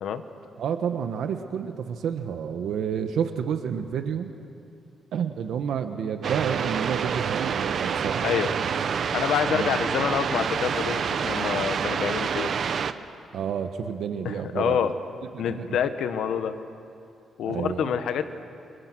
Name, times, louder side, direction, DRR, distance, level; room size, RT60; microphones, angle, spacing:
voice 1, 0.6-4.3 5.1-8.3 9.5-9.8 13.3-14.9 15.3-15.7 17.5-18.0, right 7 dB, 75° right, 7 dB, 1.3 m, -30 dB
sound 1, 6.2-12.9, right 7 dB, 55° right, 1.0 m, -27 dB
voice 2, 9.1-12.5 14.2-14.9 15.4-16.5 17.4-18.3, left 8 dB, 80° left, 9 dB, 1.5 m, -27 dB
30.0 x 28.0 x 6.2 m, 2.5 s
cardioid pair, 125°, 0 cm